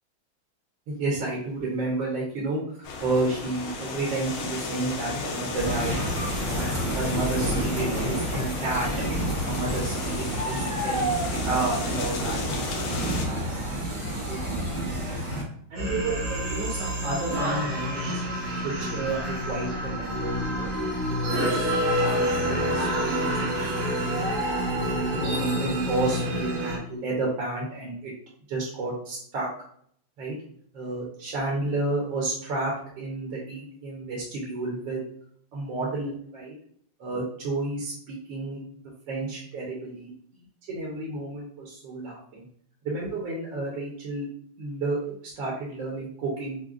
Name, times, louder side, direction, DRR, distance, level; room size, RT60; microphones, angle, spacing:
voice 1, 0.9-6.0 6.5-8.9 9.4-13.9 14.1-14.7 15.7-18.2 18.6-20.7 21.1-21.7 22.0-24.2 24.8-28.1 28.5-29.5 30.2-30.4 30.7-35.0 35.5-36.5 37.0-38.8 39.1-40.4 40.7-42.5 42.8-44.3 44.6-46.6, right 2 dB, 65° right, -3 dB, 1.5 m, -31 dB
sound 1, 2.8-13.3, left 3 dB, 75° left, 1.5 m, -34 dB
sound 2, 5.5-15.4, right 1 dB, 30° right, 0.5 m, -29 dB
sound 3, 15.8-26.8, equal, 90° right, 2.0 m, -27 dB
5.9 x 2.2 x 2.5 m, 0.64 s
omnidirectional pair, 2.3 m